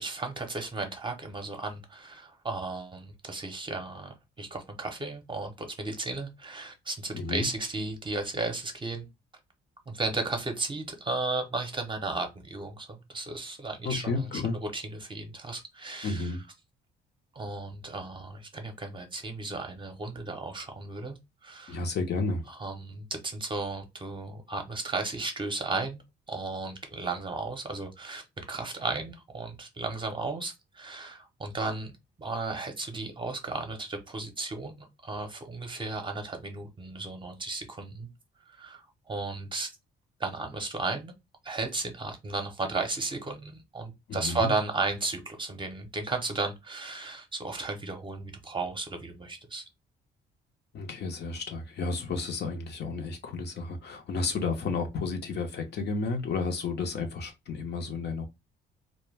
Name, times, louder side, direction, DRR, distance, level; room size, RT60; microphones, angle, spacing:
voice 1, 0.0-9.1 9.9-14.4 14.7-16.3 17.3-21.2 21.4-21.8 22.5-26.0 26.3-28.2 28.5-31.9 32.2-38.1 38.5-39.7 40.2-41.1 41.4-49.6, right 3 dB, 25° right, 0.7 m, -34 dB
voice 2, 7.1-7.5 13.8-14.6 16.0-16.4 21.7-22.4 44.1-44.5 50.7-58.3, left 4 dB, 55° left, 0.7 m, -32 dB
2.2 x 2.1 x 3.2 m
cardioid pair, 90°, 20 cm